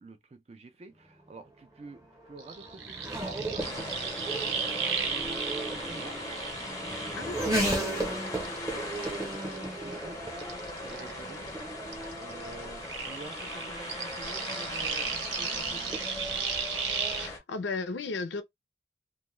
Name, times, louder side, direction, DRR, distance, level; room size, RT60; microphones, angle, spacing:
voice 1, 0.0-10.2 10.8-11.4 12.2-16.0, right 3 dB, 35° right, 0.4 m, -49 dB
Race car auto racing / Accelerating revving vroom, 1.1-17.3, right 1 dB, 15° right, 0.7 m, -37 dB
sound 1, 2.4-7.9 8.3-11.6 11.9-17.3, right 6 dB, 75° right, 0.7 m, -35 dB
sound 2, 3.6-17.4, left 2 dB, 20° left, 0.5 m, -40 dB
voice 2, 7.1-7.5 17.1-18.4, left 3 dB, 70° left, 0.4 m, -34 dB
2.2 x 2.1 x 3.0 m
head